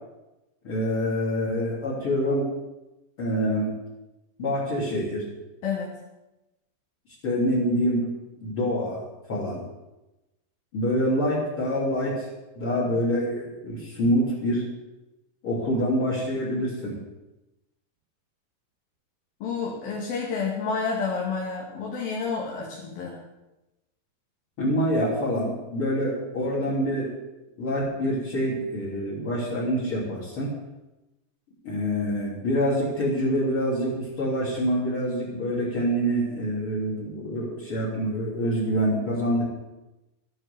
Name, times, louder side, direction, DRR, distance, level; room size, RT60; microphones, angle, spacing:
voice 1, 0.6-2.5 3.2-3.7 4.4-5.2 7.2-8.0 8.4-9.0 9.3-9.6 10.7-12.3 12.6-14.6 15.4-17.0 24.6-27.1 27.6-30.5 31.6-39.4, equal, 35° left, -4 dB, 3.8 m, -26 dB
voice 2, 5.6-5.9 19.4-23.2, left 5 dB, 65° left, -4 dB, 4.0 m, -29 dB
13.5 x 11.0 x 7.0 m, 1.0 s
omnidirectional pair, 4.6 m